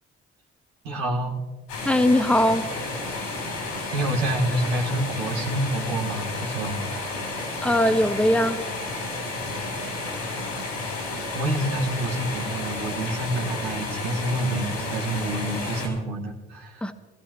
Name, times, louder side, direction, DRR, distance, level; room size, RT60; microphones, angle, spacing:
voice 1, 0.8-1.4 3.9-6.8 9.5-9.8 11.3-16.9, right 1 dB, 85° right, -1 dB, 1.9 m, -28 dB
sound 1, 1.7-15.9, left 2 dB, 90° left, 3.9 m, -31 dB
voice 2, 1.8-2.7 7.6-8.6 16.8-16.9, left 1 dB, 5° left, 7 dB, 1.4 m, -20 dB
22.0 x 15.5 x 3.1 m, 1.3 s
hypercardioid pair, 50°, 30 cm